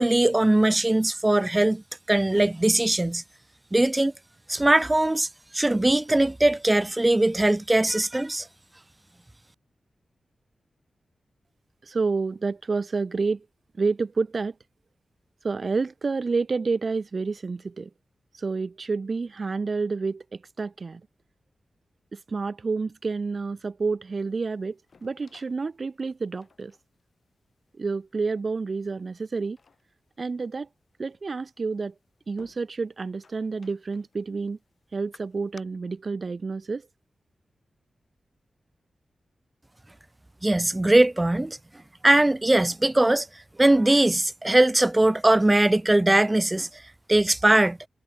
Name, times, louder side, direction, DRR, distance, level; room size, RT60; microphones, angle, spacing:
voice 1, 0.0-1.8 2.1-3.2 3.7-4.1 4.5-5.3 5.5-8.5 40.4-41.6 42.0-43.3 43.6-46.7 47.1-47.8, right 1 dB, 20° right, 0.3 m, -20 dB
voice 2, 11.8-13.5 13.8-14.6 15.4-17.9 18.3-21.0 22.1-26.8 27.8-29.6 30.2-30.7 31.0-31.9 32.3-34.6 34.9-36.9, right 4 dB, 55° right, 1.7 m, -29 dB
sound 1, 24.2-35.6, left 5 dB, 60° left, 7.6 m, -60 dB
cardioid pair, 50°, 0 cm